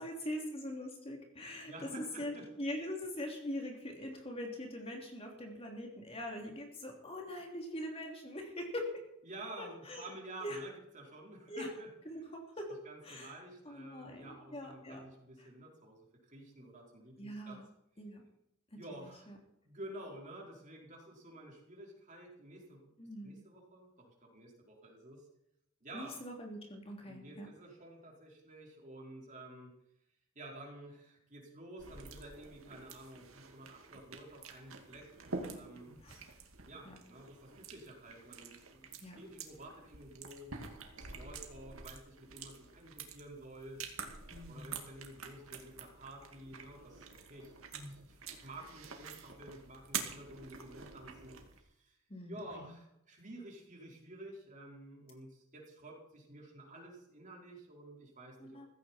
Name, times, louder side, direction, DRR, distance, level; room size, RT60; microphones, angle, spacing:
voice 1, 0.0-9.0 9.6-10.1 10.4-10.6 11.5-11.7 12.0-12.2 12.6-12.8 13.0-13.3 13.6-15.0 15.4-15.5 17.2-17.6 18.0-18.2 18.9-19.4 23.0-23.4 25.9-27.5 35.9-36.2 36.8-37.0 39.0-39.2 44.3-44.8 47.7-47.9 52.1-52.7 58.4-58.7, left 1 dB, 30° left, 1 dB, 3.2 m, -43 dB
voice 2, 1.6-2.4 9.2-12.3 12.8-17.6 18.8-19.3 19.6-22.9 23.2-25.3 25.8-26.2 27.0-29.7 30.3-35.9 36.7-40.5 40.9-43.9 44.5-47.5 47.8-52.0 52.3-58.6, right 1 dB, 40° right, -1 dB, 4.7 m, -51 dB
sound 1, 31.8-51.6, right 5 dB, 90° right, 2.3 m, -48 dB
15.5 x 15.5 x 4.5 m, 0.80 s
head